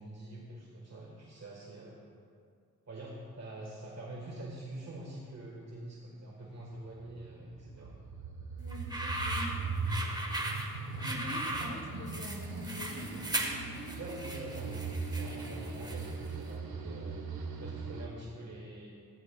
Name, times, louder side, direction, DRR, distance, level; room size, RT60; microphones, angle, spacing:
voice 1, 0.0-2.0 2.9-7.9 14.0-14.9 15.1-17.2 17.6-18.9, right 1 dB, 45° right, -3 dB, 1.4 m, -45 dB
sound 1, 6.9-18.1, right 3 dB, 75° right, 1.1 m, -39 dB
voice 2, 8.6-9.6 11.0-13.3, left 1 dB, 70° left, 2 dB, 1.3 m, -45 dB
sound 2, 8.7-16.3, right 1 dB, 10° right, 1.2 m, -38 dB
14.5 x 9.6 x 2.2 m, 2.3 s
cardioid pair, 65°, 37 cm